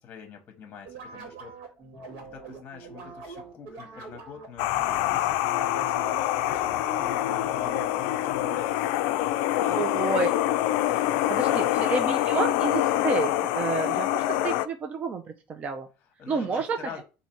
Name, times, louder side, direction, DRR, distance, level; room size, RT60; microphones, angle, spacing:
voice 1, 0.0-1.5 2.2-4.7 5.1-9.3 9.5-10.0 10.6-11.7 16.0-17.0, left 6 dB, 35° left, 5 dB, 0.9 m, -44 dB
sound 1, 0.8-9.0, right 3 dB, 80° right, 1.6 m, -44 dB
sound 2, 4.6-14.7, left 14 dB, 85° left, 0.3 m, -25 dB
voice 2, 9.8-10.3 10.9-11.0 11.3-15.9 16.3-16.8, right 4 dB, 30° right, 5 dB, 0.4 m, -30 dB
4.1 x 2.7 x 4.4 m, 0.31 s
cardioid pair, 150°, 5 cm